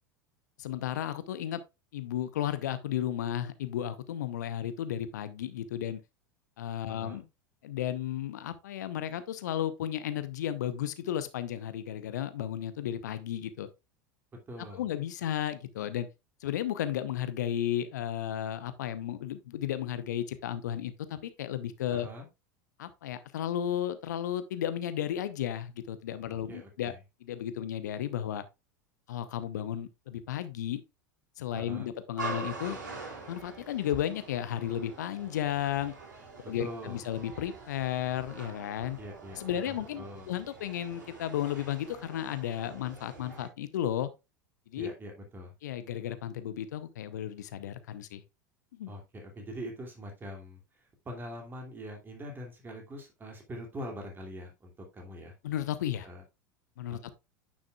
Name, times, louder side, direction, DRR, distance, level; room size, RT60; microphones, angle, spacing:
voice 1, 0.6-1.6 1.9-6.0 6.6-7.2 7.6-13.7 14.7-16.1 16.4-22.1 22.8-26.9 27.2-28.4 29.1-30.8 31.4-32.8 33.3-35.9 36.4-39.0 39.4-44.1 44.7-44.9 45.6-48.2 48.8-48.9 55.4-56.1 56.8-57.1, left 11 dB, 65° left, 0.8 m, -34 dB
voice 2, 6.9-7.3 14.5-14.8 21.9-22.3 26.5-27.0 31.5-31.9 36.6-37.0 39.0-40.3 44.7-45.5 48.9-50.6 51.0-55.3 56.0-56.2 56.9-57.1, equal, 20° right, 2.6 m, -43 dB
sound 1, 32.2-43.5, right 4 dB, 70° right, 4.2 m, -45 dB
9.6 x 6.3 x 2.4 m
figure-of-eight pair, 80°, 10 cm